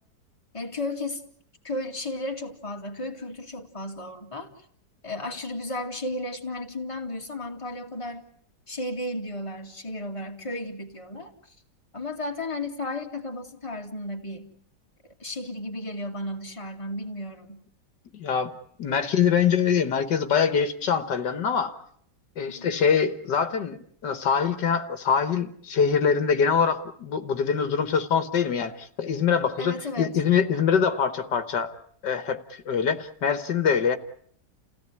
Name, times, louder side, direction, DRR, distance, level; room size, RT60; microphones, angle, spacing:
voice 1, 0.5-1.2 1.6-4.5 5.0-8.2 8.7-11.5 11.9-14.5 15.2-17.6 22.5-22.8 29.6-30.2, left 1 dB, 15° left, 2 dB, 2.4 m, -34 dB
voice 2, 18.1-18.5 18.8-21.8 22.4-31.7 32.0-34.0, left 7 dB, 75° left, 9 dB, 2.0 m, -24 dB
29.5 x 17.0 x 9.8 m, 0.68 s
omnidirectional pair, 1.9 m